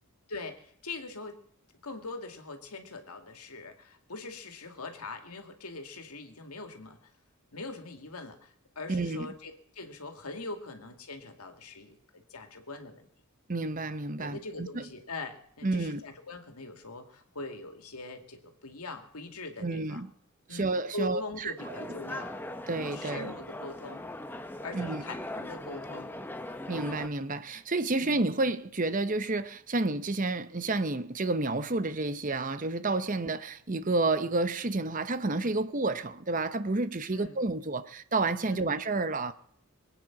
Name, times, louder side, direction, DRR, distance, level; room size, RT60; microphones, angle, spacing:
voice 1, 0.3-1.4 1.8-7.1 7.5-13.1 14.2-20.0 20.5-22.3 22.9-24.0 24.6-26.2 28.0-28.2 33.2-33.3 37.1-37.4 38.5-38.8, left 3 dB, 85° left, 2.2 m, -42 dB
voice 2, 8.9-9.3 13.5-14.9 15.6-16.0 19.6-20.1 20.5-21.7 22.7-23.3 24.7-25.0 26.7-39.3, right 2 dB, 35° right, 0.8 m, -30 dB
sound 1, 21.6-27.1, left 1 dB, 10° left, 0.8 m, -40 dB
23.0 x 9.1 x 5.9 m
head